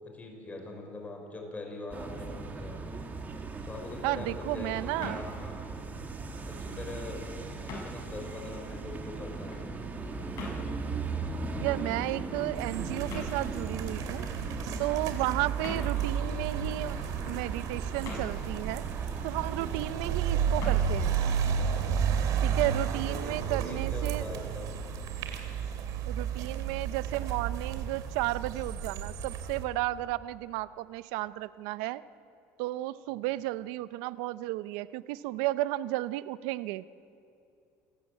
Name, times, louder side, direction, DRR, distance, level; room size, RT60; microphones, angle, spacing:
voice 1, 0.0-2.8 3.6-5.6 6.4-7.2 7.6-9.6 15.2-15.3 22.4-24.7, left 2 dB, 20° left, 2 dB, 5.6 m, -42 dB
sound 1, 1.9-19.9, right 4 dB, 25° right, 2.4 m, -39 dB
sound 2, 3.7-22.5, left 3 dB, 55° left, 7.2 m, -47 dB
voice 2, 4.0-5.2 11.6-14.3 14.8-18.8 19.2-21.2 22.4-24.3 26.1-32.0 32.6-36.8, right 16 dB, 85° right, 16 dB, 0.6 m, -33 dB
sound 3, 12.5-29.6, right 7 dB, 65° right, 2.5 m, -32 dB
28.0 x 13.5 x 8.6 m, 2.7 s
cardioid pair, 115°, 7 cm